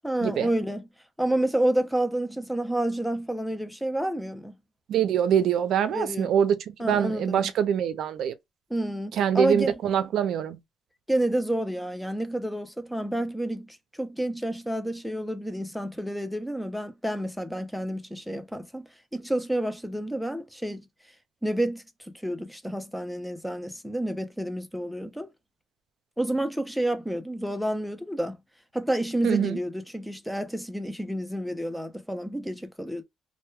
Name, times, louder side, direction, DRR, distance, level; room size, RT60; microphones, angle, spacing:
voice 1, 0.0-0.9 1.2-4.6 5.9-6.3 6.8-7.5 8.7-9.7 11.1-20.8 21.4-25.3 26.2-28.4 28.7-33.0, right 1 dB, ahead, 0.4 m, -29 dB
voice 2, 4.9-8.3 9.1-10.6 29.2-29.6, right 9 dB, 75° right, 0.4 m, -24 dB
2.2 x 2.1 x 2.9 m
cardioid pair, 90°, 0 cm